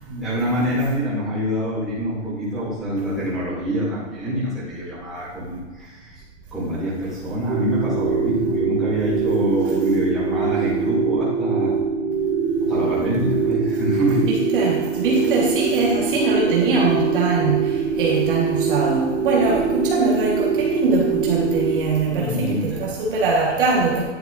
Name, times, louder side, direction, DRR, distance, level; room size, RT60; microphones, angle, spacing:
voice 1, 0.0-6.2 6.5-11.7 12.6-14.3 22.1-22.8, equal, ahead, -12 dB, 2.5 m, -25 dB
sound 1, 7.5-21.8, right 5 dB, 25° right, 2.7 m, -23 dB
voice 2, 14.2-17.7 17.9-24.0, right 3 dB, 45° right, -3 dB, 1.6 m, -22 dB
10.5 x 8.9 x 2.6 m, 1.4 s
hypercardioid pair, 175°, 37 cm